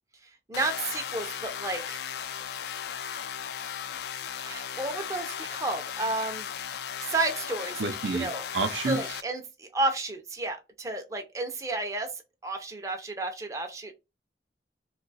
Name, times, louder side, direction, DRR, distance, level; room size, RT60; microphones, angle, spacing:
sound 1, 0.5-9.2, left 8 dB, 65° left, 0.3 m, -36 dB
voice 1, 0.5-2.0 4.4-6.5 7.0-7.9 8.1-8.4 8.8-12.1 12.4-13.9, right 2 dB, 20° right, 0.5 m, -32 dB
voice 2, 7.8-9.2, right 4 dB, 80° right, 0.5 m, -30 dB
2.8 x 2.3 x 3.9 m
head